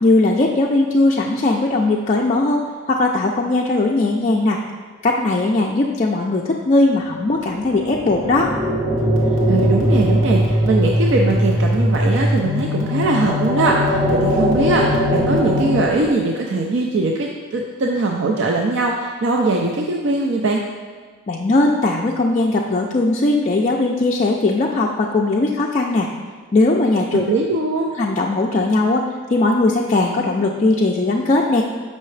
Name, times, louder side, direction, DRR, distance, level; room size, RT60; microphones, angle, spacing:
voice 1, 0.0-4.6 5.0-8.5 21.3-26.1 26.5-27.2 28.0-31.6, left 2 dB, 35° left, -2 dB, 0.3 m, -18 dB
sound 1, 7.3-16.1, right 1 dB, 15° right, 0.6 m, -24 dB
sound 2, 9.0-15.8, left 1 dB, 75° right, 1.0 m, -21 dB
voice 2, 9.5-20.6 27.1-27.9, right 2 dB, 60° right, 0 dB, 0.4 m, -21 dB
6.7 x 5.4 x 3.2 m, 1.5 s
head